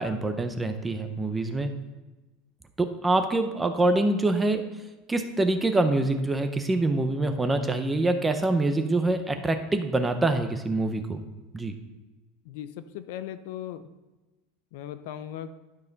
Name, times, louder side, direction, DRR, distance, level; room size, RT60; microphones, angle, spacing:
voice 1, 0.0-1.7 2.8-4.6 5.1-11.2 11.5-11.7, right 2 dB, 10° right, 7 dB, 0.6 m, -25 dB
voice 2, 0.9-1.2 12.5-13.9 14.7-15.5, left 11 dB, 65° left, 12 dB, 0.5 m, -38 dB
12.0 x 5.5 x 3.9 m, 1.2 s
supercardioid pair, 170°, 0 cm